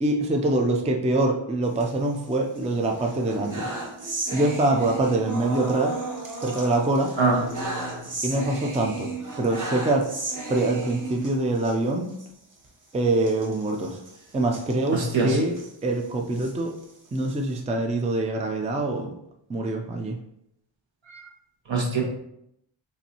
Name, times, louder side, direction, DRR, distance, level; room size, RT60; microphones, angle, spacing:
voice 1, 0.0-3.7 4.3-5.9 6.4-7.1 8.2-10.1 10.5-12.1 12.9-14.0 14.3-16.8 17.1-19.1 19.5-20.2, right 2 dB, 15° right, 3 dB, 0.4 m, -24 dB
sound 1, 1.6-2.6 3.0-11.8 12.1-12.3 12.5-12.7 13.2-15.7 16.2-17.6, right 2 dB, 40° right, 0.9 m, -35 dB
voice 2, 7.2-7.9 14.9-15.4 21.1-21.2 21.7-22.0, right 3 dB, 65° right, 0 dB, 1.3 m, -24 dB
7.0 x 2.6 x 2.9 m, 0.78 s
wide cardioid pair, 120°, 48 cm